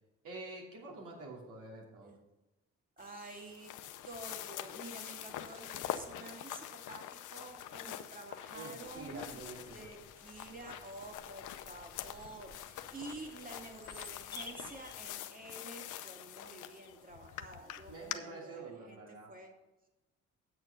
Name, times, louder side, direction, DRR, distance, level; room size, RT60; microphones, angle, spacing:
voice 1, 0.2-2.2 8.5-9.9 17.9-19.3, right 3 dB, 80° right, -3 dB, 2.9 m, -47 dB
sound 1, 3.0-18.2, left 12 dB, 85° left, 0.7 m, -45 dB
voice 2, 3.0-3.7 4.1-19.5, right 2 dB, 30° right, 2 dB, 2.3 m, -49 dB
Bird vocalization bird call bird song, 8.8-15.1, left 2 dB, 15° left, 1.3 m, -54 dB
8.9 x 6.7 x 5.8 m, 1.0 s
cardioid pair, 90°, 30 cm